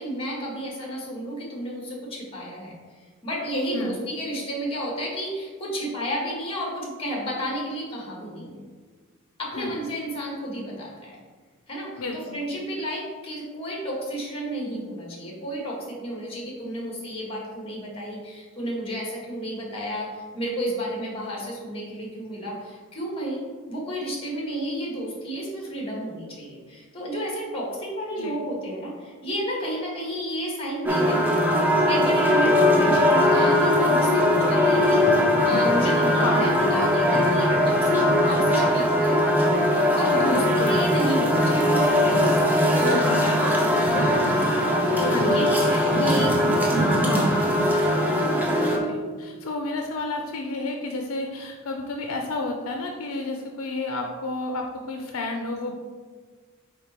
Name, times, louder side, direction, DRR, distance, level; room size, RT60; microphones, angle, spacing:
voice 1, 0.0-2.8 3.2-8.7 9.4-11.2 11.7-23.4 23.7-31.5 31.8-39.2 40.0-41.8 45.0-46.3 46.8-47.3, equal, 25° left, -3 dB, 1.7 m, -31 dB
voice 2, 12.0-12.4 28.2-28.4 32.9-33.1 36.1-36.4 40.2-40.9 42.8-43.6 45.0-46.4 47.0-47.3 48.7-55.8, left 2 dB, 85° left, 3 dB, 0.5 m, -31 dB
sound 1, 30.8-48.8, left 1 dB, 10° right, 0.8 m, -20 dB
5.0 x 4.3 x 4.4 m, 1.5 s
head